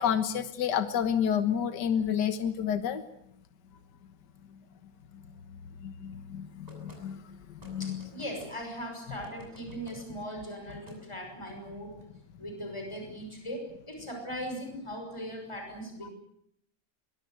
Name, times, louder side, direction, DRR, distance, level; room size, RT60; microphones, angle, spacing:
voice 1, 0.0-3.0 5.1-5.2 5.8-7.2 7.6-8.0 16.0-16.1, left 8 dB, 70° left, 10 dB, 1.9 m, -29 dB
sound 1, 6.7-7.0 7.6-8.5 9.2-10.0 10.7-11.0, right 1 dB, 20° right, 7.4 m, -51 dB
voice 2, 7.8-12.0 12.4-16.1, equal, 15° left, 3 dB, 6.5 m, -39 dB
23.5 x 22.5 x 7.9 m, 0.72 s
omnidirectional pair, 2.0 m